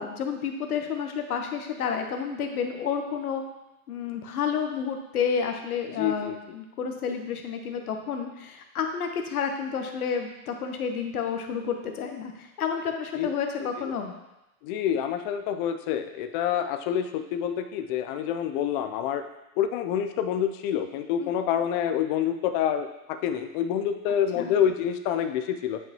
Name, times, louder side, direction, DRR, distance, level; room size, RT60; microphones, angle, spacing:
voice 1, 0.0-3.4 3.9-14.1 21.2-21.3 24.3-24.5, left 6 dB, 85° left, 5 dB, 1.1 m, -30 dB
voice 2, 6.0-6.4 13.1-13.3 13.8-13.9 14.6-19.2 19.6-22.9 23.2-25.8, left 9 dB, 40° left, 7 dB, 0.5 m, -27 dB
8.6 x 5.5 x 2.9 m, 0.96 s
hypercardioid pair, 125°, 43 cm